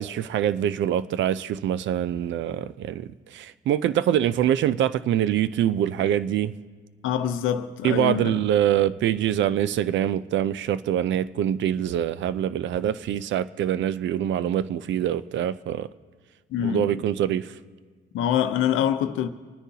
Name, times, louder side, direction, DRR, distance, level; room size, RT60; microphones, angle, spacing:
voice 1, 0.0-6.5 7.8-15.9 16.6-17.6, right 10 dB, 70° right, 0.5 m, -24 dB
voice 2, 7.0-8.4 16.5-17.0 18.1-19.3, left 10 dB, 85° left, 0.7 m, -25 dB
29.0 x 9.8 x 2.8 m
cardioid pair, 90°, 20 cm